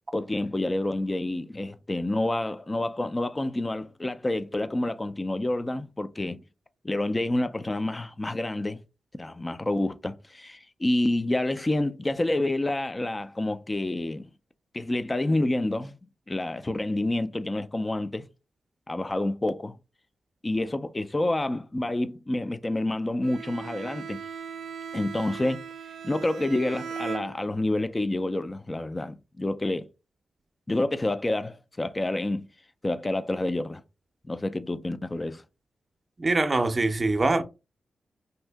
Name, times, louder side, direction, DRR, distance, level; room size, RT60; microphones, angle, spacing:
voice 1, 0.1-6.4 6.8-8.8 9.1-14.3 14.7-16.0 16.3-18.3 18.9-19.8 20.4-24.2 24.9-25.6 26.0-29.9 30.7-32.5 32.8-33.8 34.2-35.4, left 1 dB, 25° left, 0.4 m, -28 dB
Bowed string instrument, 23.2-27.8, right 6 dB, 80° right, 0.4 m, -38 dB
voice 2, 36.2-37.4, right 2 dB, 40° right, 0.6 m, -23 dB
2.7 x 2.6 x 3.4 m
cardioid pair, 50°, 0 cm